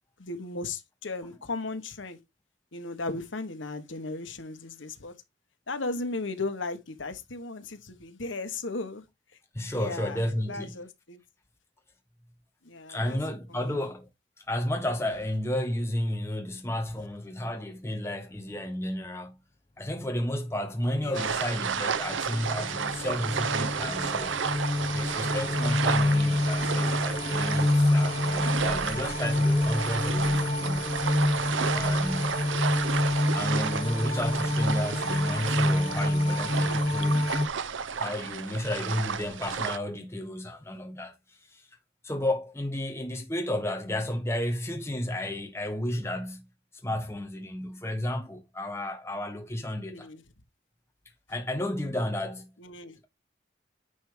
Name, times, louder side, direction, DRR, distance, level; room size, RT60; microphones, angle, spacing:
voice 1, 0.2-2.2 2.7-5.1 5.7-9.0 9.7-10.2 10.5-11.2 12.6-13.2 13.5-13.8 21.0-21.4 49.9-50.2 52.6-53.0, left 3 dB, 85° left, 1.3 m, -36 dB
voice 2, 9.5-10.7 12.9-14.1 14.4-19.4 19.8-24.4 24.9-32.4 33.3-37.2 38.0-41.2 41.5-41.6 42.0-46.4 46.8-50.1 51.3-52.5, left 1 dB, 15° left, 1.3 m, -32 dB
sound 1, 21.1-39.8, right 6 dB, 85° right, 0.7 m, -32 dB
sound 2, 21.2-37.5, left 1 dB, 30° left, 0.9 m, -27 dB
10.0 x 3.4 x 5.0 m
head